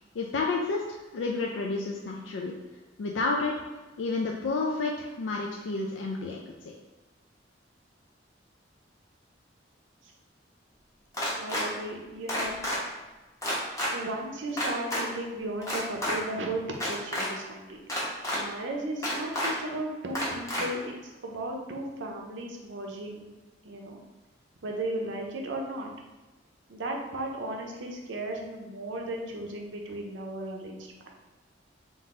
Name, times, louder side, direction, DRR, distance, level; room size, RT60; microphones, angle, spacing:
voice 1, 0.1-0.8 1.1-2.5 3.0-3.5 4.0-6.4, left 3 dB, 80° left, 0 dB, 0.4 m, -30 dB
sound 1, 11.1-11.6 12.3-12.8 13.4-13.9 14.6-15.0 15.6-16.1 16.7-17.3 17.9-18.4 19.0-19.5 20.1-20.6, equal, 15° left, 0.9 m, -29 dB
voice 2, 11.4-12.7 13.9-17.9 18.3-23.2 23.6-24.0 24.6-25.9 26.7-30.9, right 1 dB, 80° right, 0 dB, 0.7 m, -35 dB
3.8 x 2.6 x 3.6 m, 1.2 s
head